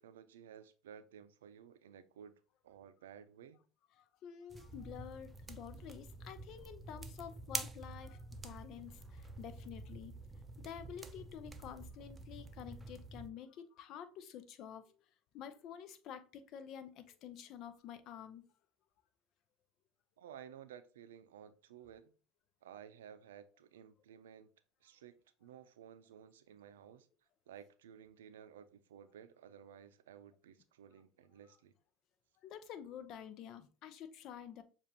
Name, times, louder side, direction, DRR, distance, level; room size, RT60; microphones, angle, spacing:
voice 1, 0.0-2.3 2.6-3.6 20.2-22.1 22.6-24.5 24.8-25.1 25.4-27.1 27.5-31.7, right 8 dB, 85° right, 0.5 m, -55 dB
voice 2, 4.0-10.1 10.6-15.0 15.3-18.4 32.4-34.6, left 9 dB, 55° left, 0.6 m, -49 dB
sound 1, 4.5-13.3, right 3 dB, 20° right, 0.6 m, -47 dB
6.9 x 2.5 x 2.9 m
hypercardioid pair, 85°, 0 cm